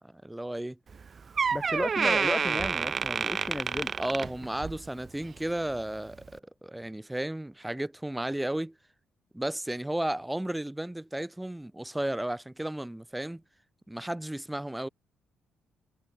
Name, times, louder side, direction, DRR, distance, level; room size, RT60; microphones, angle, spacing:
voice 1, 0.0-0.8 4.0-8.7 9.3-13.4 13.9-14.9, right 1 dB, 5° right, 4.0 m, -33 dB
Door, 0.9-1.0 1.4-4.9 5.2-5.5 6.2-6.3, right 5 dB, 40° right, 1.9 m, -29 dB
voice 2, 1.5-3.9, left 2 dB, 15° left, 3.2 m, -34 dB
cardioid pair, 90°, 0 cm